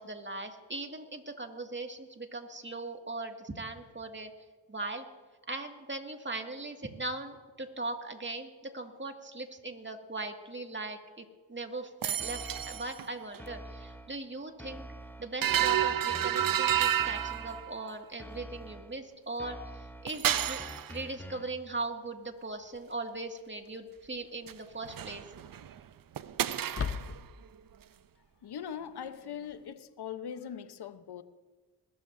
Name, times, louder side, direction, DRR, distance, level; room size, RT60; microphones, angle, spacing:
voice 1, 0.0-4.3 4.7-5.1 5.5-14.9 15.2-25.2, right 2 dB, 25° right, 2.2 m, -39 dB
sound 1, 12.0-13.1 13.3-13.4 15.4-17.8 20.1-20.9 24.5-24.6 24.8-25.8 26.2-27.2, right 10 dB, 55° right, 0.6 m, -30 dB
sound 2, 12.2-13.0 13.4-14.2 14.6-17.8 18.2-19.0 19.4-21.6, equal, 5° left, 0.8 m, -46 dB
sound 3, 22.1-22.2 24.0-24.4 24.7-24.8 26.6-27.5, left 6 dB, 35° left, 0.7 m, -37 dB
voice 2, 28.4-31.2, left 8 dB, 65° left, 1.0 m, -41 dB
21.0 x 13.0 x 2.7 m
supercardioid pair, 45°, 42 cm